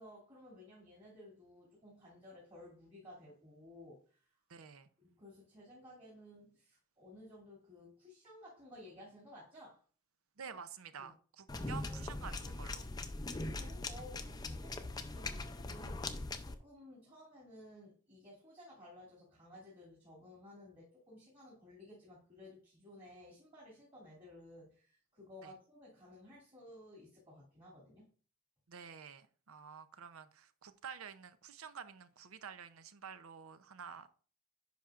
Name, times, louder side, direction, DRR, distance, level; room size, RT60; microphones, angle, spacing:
voice 1, 0.0-4.3 5.0-9.8 11.0-11.1 13.1-13.2 13.5-28.1, left 1 dB, 30° right, 2.5 m, -56 dB
voice 2, 4.5-4.9 10.4-12.9 25.4-25.5 28.7-34.1, right 6 dB, 80° right, 0.6 m, -50 dB
sound 1, 11.5-16.5, left 2 dB, 20° left, 0.4 m, -41 dB
10.0 x 5.7 x 2.5 m
head